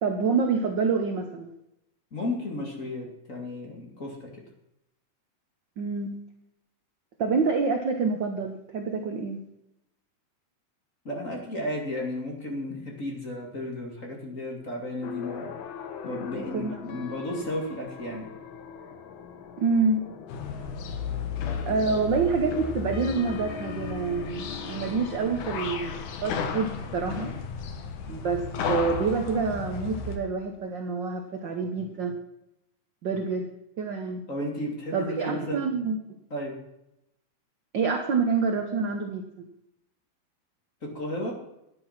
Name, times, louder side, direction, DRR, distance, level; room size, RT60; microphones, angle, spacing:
voice 1, 0.0-1.5 5.8-6.2 7.2-9.4 16.3-16.8 19.6-20.0 21.7-27.3 28.1-32.2 33.0-33.5 33.8-34.2 34.9-36.0 37.7-39.5, right 4 dB, 65° right, 4 dB, 1.1 m, -27 dB
voice 2, 2.1-4.3 11.0-15.5 16.0-18.3 34.3-35.7 36.3-36.5 40.8-41.3, left 1 dB, 25° left, 0 dB, 2.4 m, -33 dB
sound 1, 15.0-27.1, left 7 dB, 60° left, 1.3 m, -40 dB
sound 2, 20.3-30.2, left 5 dB, 80° left, 2.8 m, -34 dB
12.0 x 9.9 x 5.9 m, 0.84 s
omnidirectional pair, 3.6 m